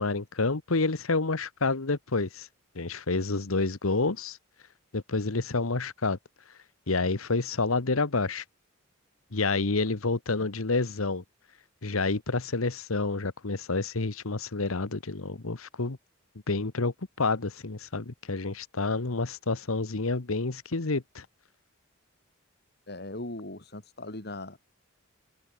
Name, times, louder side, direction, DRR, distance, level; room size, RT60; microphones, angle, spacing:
voice 1, 0.0-2.5 2.7-4.4 4.9-6.2 6.9-8.4 9.3-11.2 11.8-16.0 16.5-21.2, left 3 dB, 85° left, 1.3 m, -29 dB
voice 2, 22.9-24.6, left 2 dB, 50° left, 2.6 m, -39 dB
open air
head